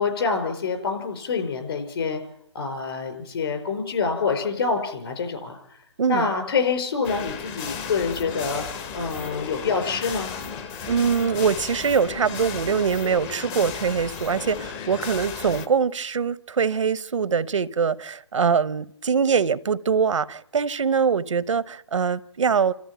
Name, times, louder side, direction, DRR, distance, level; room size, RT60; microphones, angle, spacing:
voice 1, 0.0-2.2 2.5-5.6 6.1-8.6 8.9-10.3, left 5 dB, 50° left, 5.0 m, -26 dB
voice 2, 6.0-6.3 10.9-22.7, right 6 dB, 80° right, 0.9 m, -23 dB
sound 1, 7.0-15.7, left 6 dB, 15° left, 0.8 m, -34 dB
28.0 x 14.0 x 9.0 m
hypercardioid pair, 160°, 16 cm